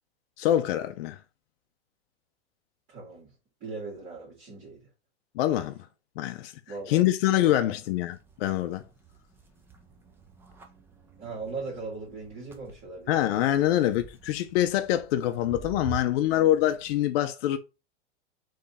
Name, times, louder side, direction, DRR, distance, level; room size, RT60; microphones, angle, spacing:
voice 1, 0.4-1.2 5.3-5.8 6.2-6.5 6.9-8.8 13.1-17.6, left 13 dB, 60° left, 0.5 m, -25 dB
voice 2, 2.9-3.3 3.6-4.8 6.7-7.1 7.4-7.5 11.2-13.2, right 3 dB, 35° right, 2.2 m, -39 dB
sound 1, 8.1-17.0, right 6 dB, 5° right, 0.3 m, -47 dB
3.5 x 3.2 x 4.0 m
hypercardioid pair, 130°, 35 cm